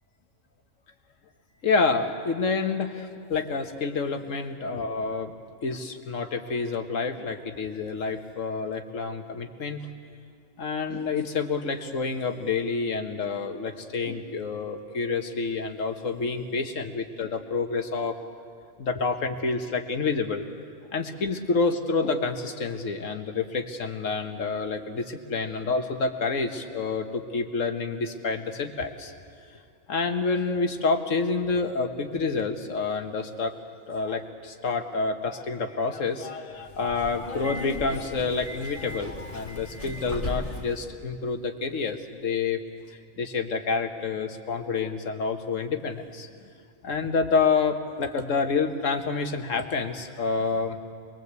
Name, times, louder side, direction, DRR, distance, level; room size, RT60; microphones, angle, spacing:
voice 1, 1.6-5.3 5.6-9.9 10.6-18.2 18.8-20.5 20.9-29.1 29.9-33.5 33.9-42.6 43.2-46.3 46.8-50.8, left 4 dB, 70° left, 7 dB, 1.7 m, -28 dB
Subway metro underground, 36.6-40.8, left 1 dB, 30° left, 2.2 m, -36 dB
25.5 x 21.5 x 8.2 m, 2.3 s
omnidirectional pair, 1.4 m